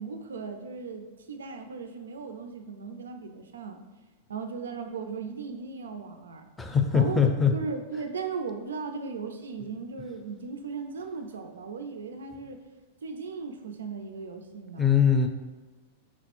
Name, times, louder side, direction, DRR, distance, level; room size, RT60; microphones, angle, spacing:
voice 1, 0.0-3.8 4.3-6.5 6.9-12.6 13.0-15.1, right 4 dB, 90° right, 6 dB, 0.4 m, -37 dB
voice 2, 6.6-7.5 14.8-15.3, left 7 dB, 10° left, 4 dB, 0.5 m, -21 dB
5.9 x 2.0 x 2.9 m, 1.2 s
hypercardioid pair, 115°, 0 cm